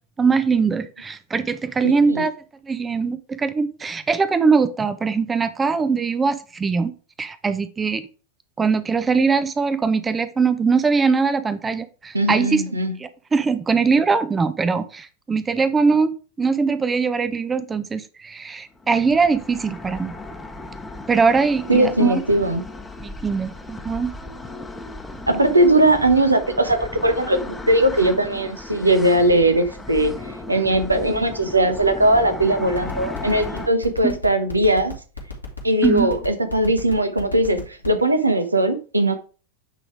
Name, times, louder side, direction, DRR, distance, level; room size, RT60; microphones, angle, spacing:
voice 1, 0.2-2.3 2.7-6.9 7.2-8.1 8.6-12.6 13.0-16.1 16.4-20.2 21.1-22.2 23.0-24.1 34.0-34.2 35.8-36.1, right 5 dB, 15° right, 0.6 m, -21 dB
voice 2, 1.8-2.2 12.1-13.0 21.7-22.6 25.3-34.9 35.6-39.2, right 1 dB, 80° right, 1.0 m, -19 dB
sound 1, 18.8-33.7, left 2 dB, 10° left, 1.0 m, -36 dB
sound 2, 32.7-38.0, left 7 dB, 85° left, 2.2 m, -33 dB
8.9 x 3.9 x 4.8 m
figure-of-eight pair, 90°, 0 cm